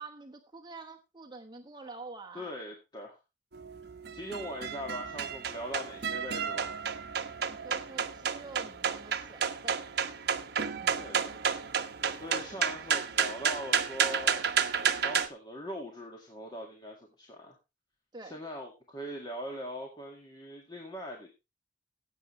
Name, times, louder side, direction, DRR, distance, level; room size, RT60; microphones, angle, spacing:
voice 1, 0.0-2.5 7.4-9.8 10.8-11.1 18.1-18.4, right 3 dB, 25° right, 3 dB, 1.2 m, -47 dB
voice 2, 2.3-3.2 4.1-6.7 10.9-11.4 12.2-14.5 14.8-17.6 18.2-21.3, equal, 25° left, 0 dB, 2.0 m, -41 dB
sound 1, 3.5-15.3, right 7 dB, 60° right, 0.9 m, -31 dB
15.5 x 8.2 x 3.2 m, 0.26 s
head